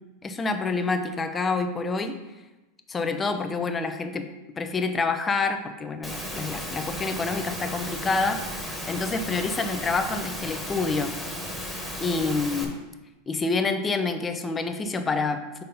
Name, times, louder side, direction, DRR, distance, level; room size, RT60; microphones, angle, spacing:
voice 1, 0.2-2.2 2.9-4.3 4.6-11.1 12.0-12.8 13.3-15.6, left 4 dB, 20° left, 7 dB, 0.7 m, -27 dB
Engine / Mechanisms, 6.0-12.6, equal, ahead, 1.5 m, -34 dB
5.6 x 4.2 x 5.4 m, 1.1 s
hypercardioid pair, 95°, 0 cm